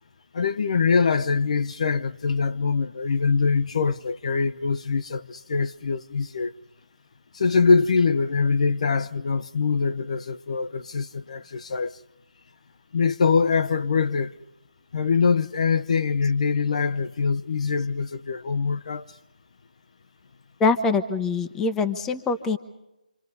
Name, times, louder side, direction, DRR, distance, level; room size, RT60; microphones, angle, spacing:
voice 1, 0.3-6.5 7.3-11.9 12.9-14.3 14.9-19.0, left 5 dB, 50° left, 0.8 m, -23 dB
voice 2, 20.6-22.6, left 4 dB, 10° left, 1.0 m, -23 dB
27.5 x 25.0 x 5.4 m
figure-of-eight pair, 155°, 4 cm